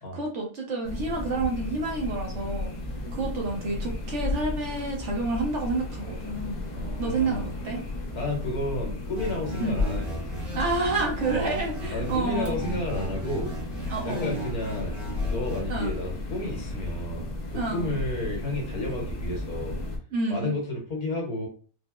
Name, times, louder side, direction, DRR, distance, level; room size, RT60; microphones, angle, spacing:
voice 1, 0.1-2.7 3.1-6.6 7.0-7.8 9.6-9.8 10.5-12.6 13.9-14.3 15.7-15.9 17.5-18.0 20.1-20.6, right 3 dB, 60° right, 0 dB, 1.0 m, -29 dB
sound 1, 0.8-20.0, left 2 dB, 60° left, 0.4 m, -34 dB
voice 2, 6.8-7.5 8.1-10.4 11.3-11.6 11.9-13.5 14.0-19.8 20.3-21.5, left 1 dB, 85° left, 0 dB, 1.7 m, -32 dB
sound 2, 9.2-12.2 12.6-15.6, equal, 40° right, 1.3 m, -38 dB
4.3 x 2.1 x 2.3 m, 0.39 s
omnidirectional pair, 1.6 m